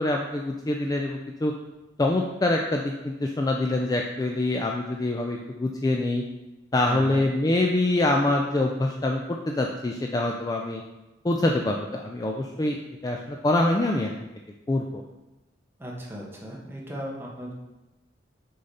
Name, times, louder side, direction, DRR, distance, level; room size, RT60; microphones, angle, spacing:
voice 1, 0.0-1.5 2.0-6.2 6.7-10.8 11.2-12.8 13.0-14.1 14.7-15.0, left 2 dB, 20° left, 1 dB, 0.3 m, -25 dB
voice 2, 6.8-7.2 15.8-17.5, equal, 10° right, -3 dB, 1.1 m, -36 dB
6.5 x 4.0 x 4.1 m, 1.0 s
head